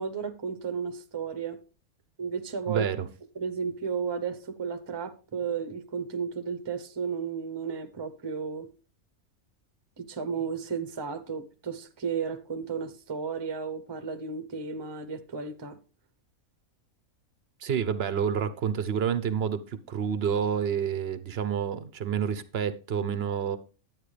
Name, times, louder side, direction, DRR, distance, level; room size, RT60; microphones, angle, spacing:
voice 1, 0.0-1.6 2.2-2.8 3.4-8.7 10.0-15.8, right 6 dB, 25° right, 0.7 m, -33 dB
voice 2, 2.7-3.1 17.6-23.6, right 7 dB, 55° right, 0.8 m, -29 dB
10.5 x 9.0 x 3.2 m
omnidirectional pair, 1.5 m